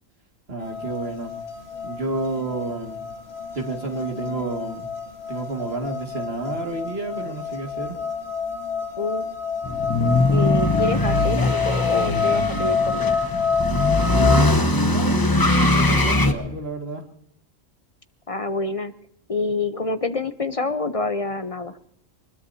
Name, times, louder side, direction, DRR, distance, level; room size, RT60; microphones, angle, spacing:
voice 1, 0.5-1.3 1.8-3.0 3.5-4.9 5.3-8.0 14.2-17.0, right 2 dB, 50° right, 2 dB, 2.3 m, -30 dB
sound 1, 0.6-14.5, left 5 dB, 55° left, 1.7 m, -27 dB
sound 2, 9.6-16.3, left 2 dB, 20° left, 1.0 m, -21 dB
voice 2, 10.3-13.1 18.3-18.9 19.3-21.7, left 2 dB, 35° left, 10 dB, 0.6 m, -27 dB
23.5 x 21.0 x 2.7 m, 0.74 s
omnidirectional pair, 1.3 m